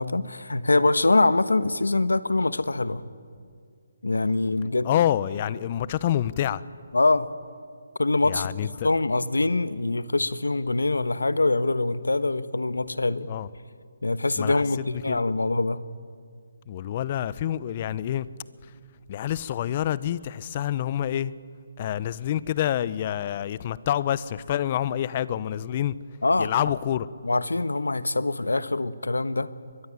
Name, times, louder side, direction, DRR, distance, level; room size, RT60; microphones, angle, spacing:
voice 1, 0.0-3.0 4.0-4.9 6.9-7.3 8.0-13.3 14.0-15.8 26.2-26.5 27.2-29.5, left 2 dB, 90° left, 1.2 m, -24 dB
voice 2, 4.8-6.6 8.2-8.9 13.3-13.5 14.4-15.2 16.7-18.3 19.1-21.3 21.8-25.9 26.4-27.1, left 11 dB, 35° left, 0.8 m, -27 dB
24.0 x 21.0 x 9.9 m
figure-of-eight pair, 150°, 0 cm